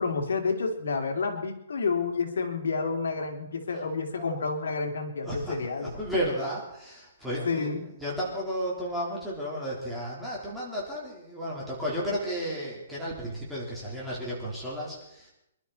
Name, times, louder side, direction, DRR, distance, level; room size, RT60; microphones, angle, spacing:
voice 1, 0.0-5.9 7.4-7.9, left 4 dB, 85° left, 4 dB, 3.0 m, -29 dB
voice 2, 5.2-5.6 5.8-7.7 8.0-15.3, equal, ahead, -7 dB, 3.9 m, -33 dB
26.0 x 12.0 x 4.2 m, 0.80 s
hypercardioid pair, 175°, 0 cm